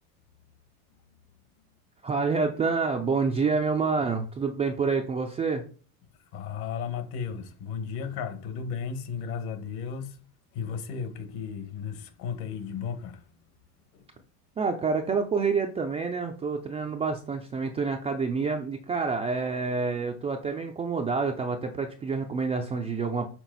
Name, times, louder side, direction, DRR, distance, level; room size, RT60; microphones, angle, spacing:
voice 1, 2.0-5.6 14.6-23.3, right 4 dB, 15° right, 0.3 m, -28 dB
voice 2, 6.3-10.2 10.5-13.2 13.9-14.0, left 6 dB, 55° left, 1.5 m, -34 dB
6.1 x 4.0 x 4.0 m
supercardioid pair, 120°, 45 cm